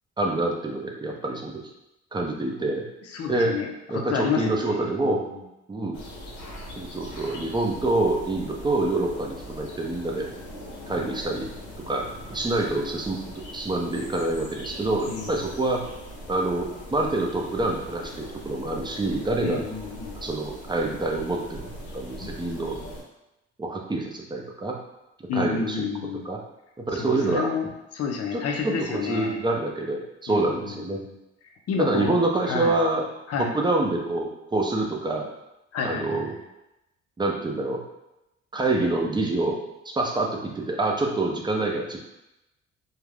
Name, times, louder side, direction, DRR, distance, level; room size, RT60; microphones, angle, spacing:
voice 1, 0.2-1.6 2.1-2.8 3.3-3.6 3.9-5.2 5.7-6.0 6.8-10.3 10.9-11.5 11.9-13.2 13.5-15.8 16.3-19.7 20.2-22.8 23.6-24.8 25.3-25.9 26.2-26.4 26.8-27.5 28.3-31.0 31.8-33.1 33.4-35.3 35.8-36.3 37.2-37.8 38.5-42.0, right 2 dB, 15° right, 0 dB, 0.5 m, -26 dB
voice 2, 3.1-3.7 4.1-5.2 11.0-11.1 15.1-15.5 19.4-20.2 25.3-26.3 26.9-27.7 27.9-29.4 30.3-31.2 31.7-32.2 32.4-32.8 33.3-33.5 35.7-36.4, left 5 dB, 55° left, 2 dB, 0.6 m, -30 dB
sound 1, 5.9-23.0, left 1 dB, 85° left, 0.9 m, -41 dB
2.4 x 2.2 x 3.3 m, 0.91 s
cardioid pair, 90°, 30 cm